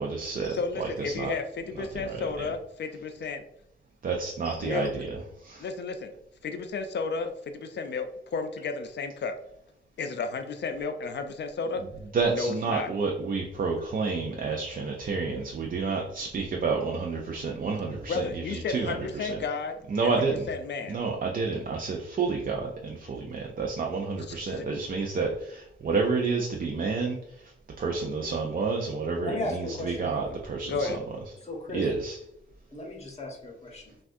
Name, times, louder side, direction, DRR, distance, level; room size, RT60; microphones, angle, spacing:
voice 1, 0.0-1.3 1.8-2.2 4.0-5.1 5.4-5.6 12.1-19.4 19.9-20.5 20.9-27.5 27.8-31.0 31.7-32.2, right 4 dB, 45° right, 0 dB, 0.5 m, -30 dB
voice 2, 0.5-3.4 4.6-4.9 5.6-6.1 6.4-9.4 10.0-11.8 12.3-12.9 18.1-21.0 24.2-24.6 30.7-31.0, left 4 dB, 60° left, 7 dB, 0.4 m, -33 dB
voice 3, 29.2-30.4 30.8-31.0 31.4-31.9 32.7-33.9, left 2 dB, 30° left, 0 dB, 1.1 m, -36 dB
5.8 x 2.4 x 2.6 m, 0.79 s
wide cardioid pair, 115°, 20 cm